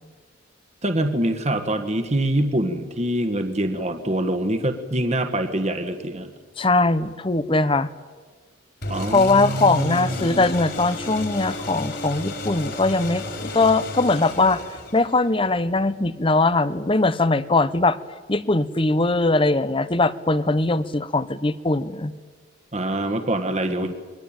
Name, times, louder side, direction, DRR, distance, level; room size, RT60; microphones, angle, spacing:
voice 1, 0.8-6.3 8.9-10.4 22.7-23.9, right 1 dB, 35° right, 6 dB, 1.6 m, -25 dB
voice 2, 6.6-7.9 9.1-14.6 14.9-18.0 18.3-22.1 23.8-23.9, left 2 dB, 25° left, 15 dB, 0.9 m, -21 dB
sound 1, 8.8-15.3, left 2 dB, 55° left, 4.7 m, -33 dB
28.0 x 22.0 x 9.0 m, 1.5 s
head